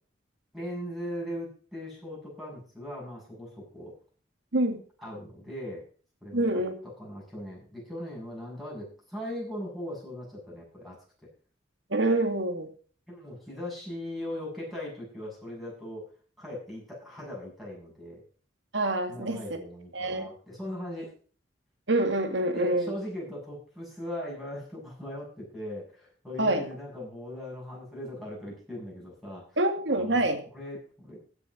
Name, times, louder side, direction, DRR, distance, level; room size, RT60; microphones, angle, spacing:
voice 1, 0.5-3.9 5.0-5.8 6.2-6.4 7.0-11.0 13.1-16.0 16.4-18.2 19.1-21.1 22.5-29.6 29.9-30.2 30.5-31.2, left 1 dB, ahead, -4 dB, 7.6 m, -39 dB
voice 2, 6.3-6.7 11.9-12.7 18.7-19.4 19.9-20.3 21.9-23.0 26.4-26.6 29.6-30.4, right 1 dB, 70° right, 6 dB, 2.2 m, -26 dB
15.5 x 7.1 x 6.3 m, 0.41 s
head